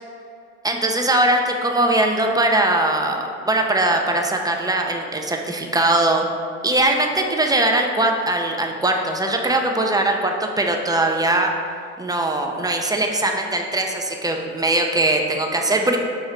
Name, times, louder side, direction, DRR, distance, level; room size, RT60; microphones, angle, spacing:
voice 1, 0.6-6.3 6.6-11.5 12.0-16.0, right 2 dB, 10° right, 2 dB, 0.6 m, -20 dB
6.6 x 3.0 x 4.8 m, 2.4 s
supercardioid pair, 90°, 34 cm